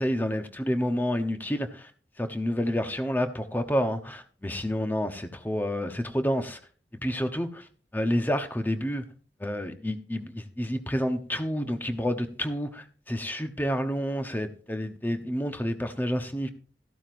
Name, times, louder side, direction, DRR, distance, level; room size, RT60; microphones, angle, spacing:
voice 1, 0.0-1.9 2.2-6.6 7.0-7.7 7.9-9.1 9.4-16.5, equal, 10° left, 0.9 m, -29 dB
14.0 x 12.0 x 2.6 m
head